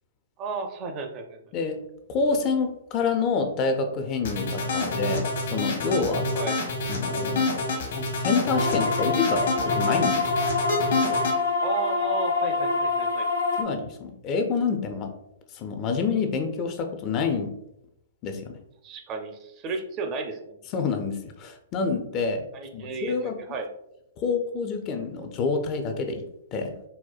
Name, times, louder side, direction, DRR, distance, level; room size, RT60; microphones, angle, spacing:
voice 1, 0.4-1.4 4.7-4.9 6.3-6.7 7.7-7.8 11.6-13.3 18.8-20.6 22.5-23.7, right 4 dB, 30° right, 5 dB, 0.4 m, -33 dB
voice 2, 2.1-6.3 6.9-7.6 8.0-10.3 13.6-15.1 15.5-17.5 18.2-18.6 20.7-22.5 22.7-23.4 24.2-26.2 26.5-26.8, left 4 dB, 35° left, 6 dB, 0.4 m, -27 dB
sound 1, 4.2-11.4, left 2 dB, 65° left, 1.0 m, -27 dB
sound 2, 8.6-13.6, left 4 dB, 80° left, 0.6 m, -26 dB
4.2 x 2.1 x 2.3 m, 0.82 s
hypercardioid pair, 120°, 0 cm